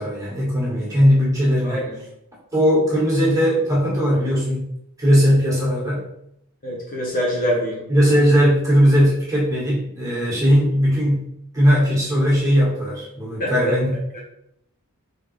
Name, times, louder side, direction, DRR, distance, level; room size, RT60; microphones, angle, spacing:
voice 1, 0.0-1.8 2.5-4.7 5.0-6.1 7.9-11.3 11.5-14.0, equal, 15° right, -7 dB, 1.6 m, -18 dB
voice 2, 1.6-2.0 6.6-7.9 13.4-13.7 14.1-14.2, equal, 40° left, -3 dB, 0.9 m, -24 dB
3.9 x 3.5 x 3.2 m, 0.77 s
head